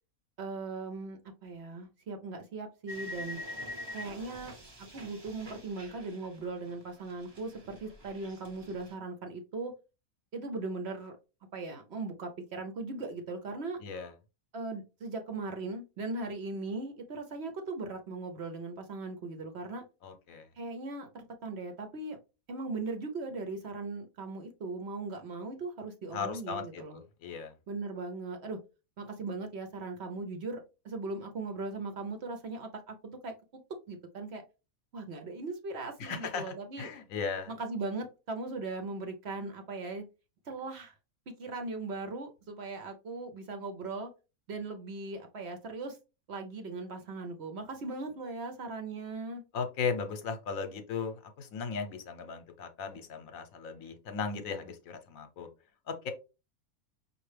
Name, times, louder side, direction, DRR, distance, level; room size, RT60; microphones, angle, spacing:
voice 1, 0.4-3.4 3.9-9.7 10.3-11.1 11.5-13.8 14.5-19.8 20.6-22.2 22.5-27.0 27.7-28.6 29.0-33.6 33.9-34.4 34.9-36.9 37.5-40.0 40.5-41.0 41.4-44.1 44.5-46.0 46.3-49.4, right 3 dB, 55° right, 5 dB, 0.8 m, -39 dB
sound 1, 2.9-6.8 7.1-8.9, left 1 dB, 25° right, 0.7 m, -45 dB
voice 2, 20.0-20.5 26.1-27.5 36.0-37.5 49.5-55.5 55.9-56.1, left 5 dB, 75° left, 7 dB, 1.1 m, -37 dB
5.3 x 2.5 x 3.3 m, 0.29 s
omnidirectional pair, 1.5 m